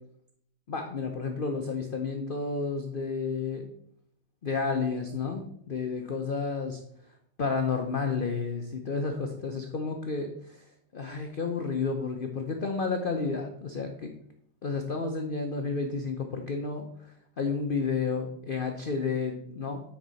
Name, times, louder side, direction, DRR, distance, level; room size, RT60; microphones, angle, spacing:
voice 1, 0.7-3.7 4.4-6.8 7.4-14.1 14.6-19.8, left 4 dB, 75° left, 4 dB, 0.4 m, -31 dB
9.4 x 4.6 x 4.0 m, 0.69 s
omnidirectional pair, 1.9 m